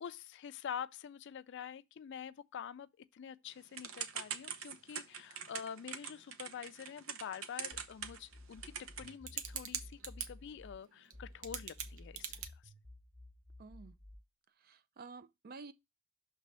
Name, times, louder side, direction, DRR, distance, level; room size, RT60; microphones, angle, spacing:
voice 1, 0.0-12.7, left 8 dB, 60° left, 0.4 m, -47 dB
Typing / Telephone, 3.7-10.3 11.1-11.2 11.4-12.5, right 7 dB, 75° right, 0.7 m, -42 dB
sound 1, 7.7-10.7 11.1-14.2, left 1 dB, 20° right, 2.1 m, -54 dB
voice 2, 13.6-14.0 14.6-15.7, right 4 dB, 45° right, 0.4 m, -51 dB
6.1 x 3.4 x 5.3 m
head